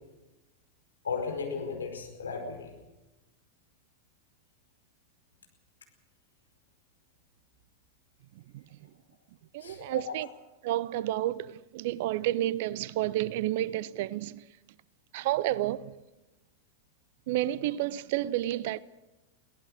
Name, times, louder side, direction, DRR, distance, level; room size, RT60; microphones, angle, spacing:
voice 1, 1.0-2.7 9.6-10.2, left 5 dB, 70° left, 4.9 m, -35 dB
voice 2, 9.5-10.3 10.6-14.4 15.1-15.9 17.3-18.8, right 14 dB, 50° right, 0.6 m, -30 dB
23.0 x 18.0 x 6.5 m
figure-of-eight pair, 90°, 0 cm